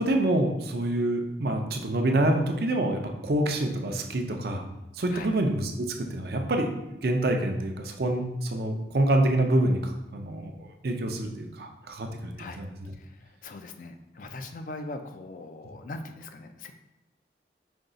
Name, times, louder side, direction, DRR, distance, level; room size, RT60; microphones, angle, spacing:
voice 1, 0.0-4.6 4.9-12.9, right 1 dB, 60° right, 3 dB, 0.5 m, -27 dB
voice 2, 13.0-16.7, left 2 dB, 50° left, 7 dB, 0.3 m, -41 dB
5.2 x 2.3 x 3.8 m, 0.97 s
head